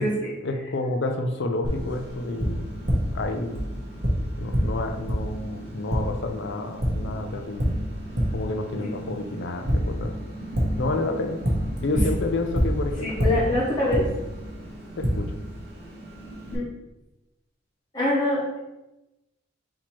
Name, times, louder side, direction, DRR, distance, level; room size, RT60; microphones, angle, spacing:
voice 1, 0.4-2.7 3.1-3.6 4.4-7.7 8.2-10.2 10.7-11.4 11.8-13.5 15.0-15.4, left 2 dB, 60° left, 6 dB, 0.5 m, -30 dB
Tap, 1.6-16.6, equal, 55° right, 1.1 m, -29 dB
voice 2, 13.0-14.0 16.4-16.6 17.9-18.6, left 1 dB, 20° left, -8 dB, 1.1 m, -24 dB
4.3 x 2.9 x 4.3 m, 0.98 s
head